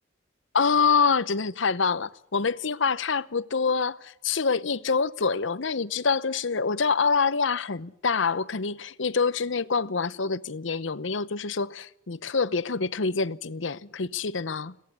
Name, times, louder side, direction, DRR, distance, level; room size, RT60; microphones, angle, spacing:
voice 1, 0.5-14.7, left 5 dB, 85° left, 0.9 m, -26 dB
22.5 x 18.0 x 8.5 m
head